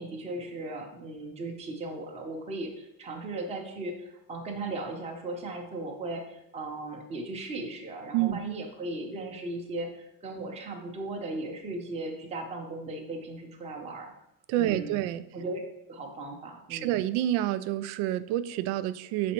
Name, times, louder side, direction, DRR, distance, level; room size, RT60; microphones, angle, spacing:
voice 1, 0.0-14.1 14.6-15.0 15.3-15.6 15.9-16.9, right 2 dB, 15° right, 1 dB, 0.7 m, -37 dB
voice 2, 14.5-15.2 16.7-19.3, right 13 dB, 90° right, 15 dB, 0.5 m, -28 dB
6.3 x 4.2 x 4.3 m, 0.82 s
cardioid pair, 165°, 43 cm